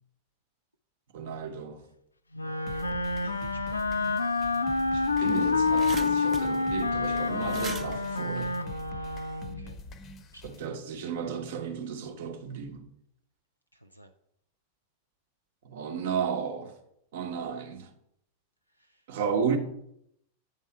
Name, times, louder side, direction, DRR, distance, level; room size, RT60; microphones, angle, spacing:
voice 1, 1.1-1.8 2.4-2.5 4.9-8.5 10.4-12.9 15.6-16.7 17.1-17.9 19.1-19.6, right 6 dB, 55° right, 0.9 m, -33 dB
Wind instrument woodwind instrument, 2.3-9.7, left 3 dB, 80° left, 0.4 m, -28 dB
sound 1, 2.7-10.7, left 3 dB, 30° left, 0.6 m, -45 dB
voice 2, 3.1-3.9 9.6-9.8 10.3-10.6 13.7-14.1 18.7-19.1, equal, 90° right, 0.3 m, -53 dB
sound 2, 4.7-4.8 5.0-9.3, right 6 dB, 25° right, 0.5 m, -43 dB
8.6 x 3.6 x 5.5 m
figure-of-eight pair, 90°, 0 cm